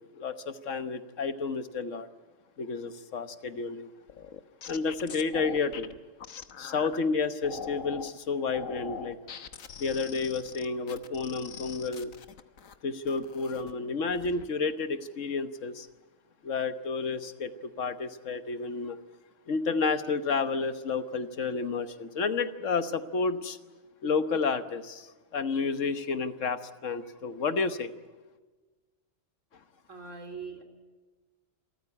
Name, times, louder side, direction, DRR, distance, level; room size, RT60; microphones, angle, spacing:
voice 1, 0.0-2.1 2.6-3.9 4.7-5.9 6.6-9.2 9.8-12.1 12.8-15.9 16.4-19.0 19.5-23.6 24.0-27.9, left 4 dB, 75° left, 10 dB, 1.5 m, -31 dB
sound 1, 4.1-7.0 7.4-8.1 8.5-12.7 13.1-13.7 14.1-14.5, left 7 dB, 90° left, 1.5 m, -42 dB
voice 2, 5.2-5.7 29.9-30.6, right 4 dB, 75° right, 4 dB, 3.7 m, -42 dB
27.5 x 14.0 x 9.8 m, 1.3 s
omnidirectional pair, 1.3 m